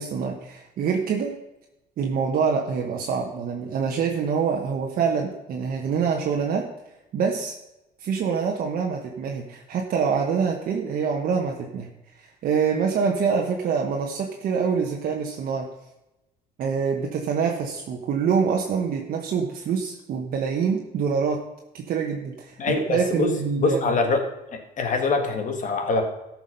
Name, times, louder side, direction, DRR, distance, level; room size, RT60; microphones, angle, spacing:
voice 1, 0.0-1.4 2.0-6.7 7.1-7.5 8.0-11.9 12.2-15.7 16.6-21.4 21.7-23.9, right 6 dB, 60° right, 1 dB, 1.2 m, -25 dB
voice 2, 22.6-24.2 24.5-26.0, left 3 dB, 50° left, 6 dB, 1.7 m, -24 dB
13.5 x 6.1 x 5.3 m, 0.94 s
cardioid pair, 110°, 17 cm